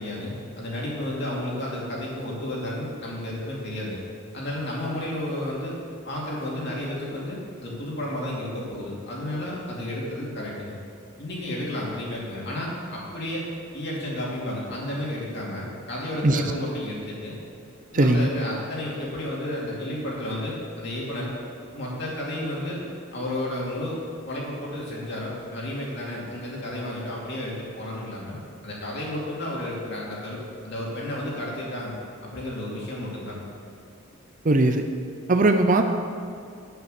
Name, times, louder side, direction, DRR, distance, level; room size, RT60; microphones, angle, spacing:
voice 1, 0.0-4.0 4.3-5.8 6.0-10.7 11.2-13.5 13.7-17.3 17.9-21.3 21.7-22.8 23.1-24.0 24.3-28.4 28.6-31.9 32.2-33.4, left 1 dB, 55° left, -4 dB, 2.6 m, -32 dB
voice 2, 17.9-18.3 34.4-34.8 35.3-35.8, right 2 dB, 40° right, 6 dB, 0.5 m, -19 dB
8.5 x 8.0 x 6.6 m, 2.5 s
head